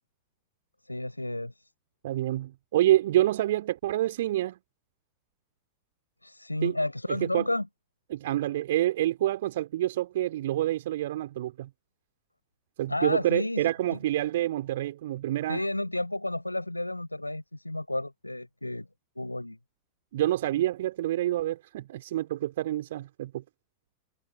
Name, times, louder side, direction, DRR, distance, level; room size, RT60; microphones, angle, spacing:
voice 1, 0.8-1.7 6.2-7.7 12.9-13.7 15.5-18.9 19.2-19.6, left 1 dB, 85° left, 5.4 m, -32 dB
voice 2, 2.0-4.6 6.6-6.7 7.1-7.5 8.1-11.7 12.8-15.6 20.1-23.4, right 14 dB, 55° right, 4.0 m, -27 dB
figure-of-eight pair, 90°, 0 cm